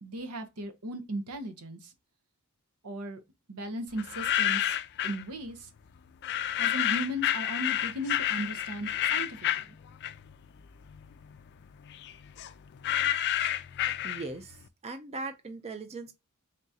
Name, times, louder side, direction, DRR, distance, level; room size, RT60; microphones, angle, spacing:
voice 1, 0.0-1.9 2.8-3.2 3.5-4.8 5.0-5.7 6.6-9.7, right 1 dB, 85° right, 0.8 m, -37 dB
sound 1, 4.0-5.2 6.2-10.4 10.8-14.5, left 12 dB, 50° left, 0.3 m, -30 dB
voice 2, 14.0-14.6 14.8-16.1, right 3 dB, 30° right, 0.4 m, -39 dB
3.8 x 3.5 x 2.7 m
head